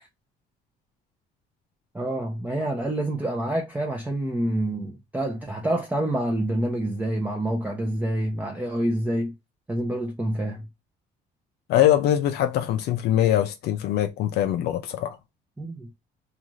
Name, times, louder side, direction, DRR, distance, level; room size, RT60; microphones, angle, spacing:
voice 1, 1.9-9.3 9.7-10.7 15.6-15.9, right 1 dB, 10° right, 0.5 m, -27 dB
voice 2, 11.7-15.2, left 11 dB, 75° left, 0.4 m, -22 dB
2.5 x 2.4 x 3.0 m
cardioid pair, 110°, 17 cm